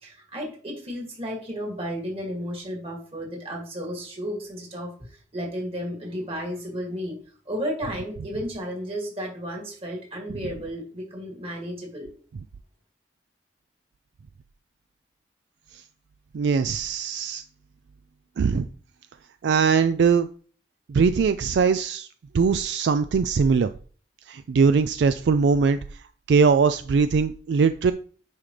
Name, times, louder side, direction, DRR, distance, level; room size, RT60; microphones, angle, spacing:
voice 1, 0.0-7.2 7.5-12.1, equal, 35° right, 0 dB, 2.4 m, -33 dB
voice 2, 16.3-17.4 18.4-18.7 19.4-20.3 20.9-22.1 22.3-23.7 24.3-25.8 26.3-27.9, right 5 dB, 70° right, 11 dB, 0.3 m, -21 dB
9.6 x 4.9 x 3.3 m, 0.43 s
head